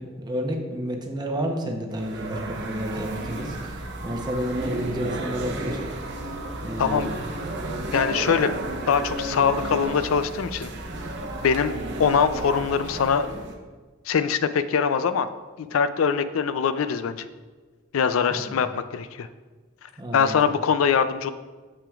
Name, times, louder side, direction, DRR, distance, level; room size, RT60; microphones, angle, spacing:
voice 1, 0.0-5.8 6.6-7.1 18.3-18.6 20.0-20.4, equal, 20° right, 2 dB, 0.8 m, -31 dB
sound 1, 1.9-13.5, right 1 dB, 60° right, 0.9 m, -33 dB
voice 2, 7.9-8.5 8.9-10.7 11.4-11.7 12.0-13.3 14.1-15.3 15.6-17.3 17.9-19.3 20.1-21.3, left 6 dB, 85° left, 12 dB, 0.4 m, -23 dB
8.8 x 6.8 x 2.4 m, 1.3 s
head